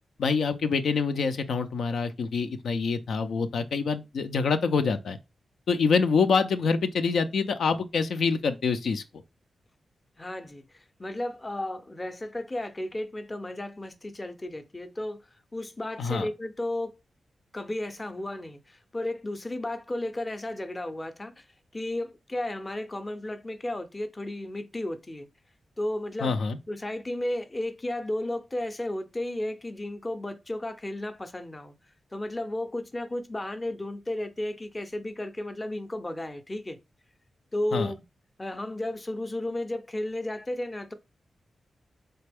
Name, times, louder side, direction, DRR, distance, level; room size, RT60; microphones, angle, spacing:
voice 1, 0.2-5.2 5.7-9.0 16.0-16.3 26.2-26.6 37.7-37.9, left 5 dB, 85° left, 0.5 m, -26 dB
voice 2, 10.2-15.2 15.5-16.9 17.5-21.5 21.7-25.3 25.8-26.4 26.7-31.7 32.1-36.8 37.5-38.0 38.4-40.9, left 1 dB, 25° left, 0.6 m, -33 dB
4.1 x 3.3 x 3.4 m
cardioid pair, 85°, 0 cm